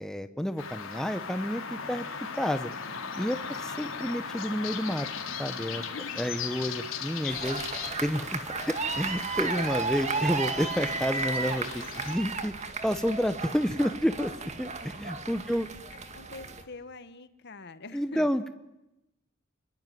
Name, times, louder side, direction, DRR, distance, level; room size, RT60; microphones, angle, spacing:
voice 1, 0.0-2.0 2.3-2.7 3.2-5.1 5.4-5.8 6.2-7.6 8.0-12.5 12.8-14.3 14.6-15.7 17.9-18.5, equal, 5° left, 9 dB, 1.1 m, -30 dB
sound 1, 0.6-12.1, left 6 dB, 75° left, 3.6 m, -38 dB
voice 2, 5.8-6.3 16.1-18.3, left 3 dB, 55° left, 11 dB, 1.7 m, -44 dB
sound 2, 7.3-16.6, right 4 dB, 35° right, 2.3 m, -34 dB
28.0 x 22.0 x 9.4 m, 0.91 s
head